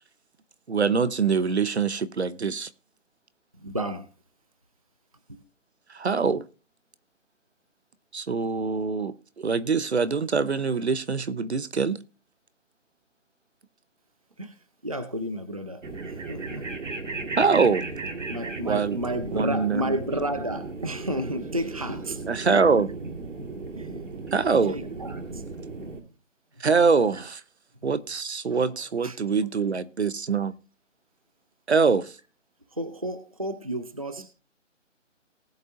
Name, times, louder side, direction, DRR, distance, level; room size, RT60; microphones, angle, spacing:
voice 1, 0.7-2.7 5.9-6.5 8.1-12.0 17.4-17.8 18.6-19.0 19.3-19.8 22.3-22.9 24.3-24.7 26.6-27.4 27.8-30.5 31.7-32.1, right 5 dB, 60° right, 0.8 m, -24 dB
voice 2, 3.5-4.1 5.3-5.4 14.4-15.8 16.1-16.7 18.3-22.2 22.5-22.9 23.7-23.9 24.7-25.4 27.9-28.0 28.5-29.3 32.7-34.3, right 1 dB, 30° right, 0.6 m, -32 dB
sound 1, 15.8-26.0, right 3 dB, 75° right, 2.2 m, -36 dB
19.0 x 8.1 x 2.6 m
hypercardioid pair, 175°, 38 cm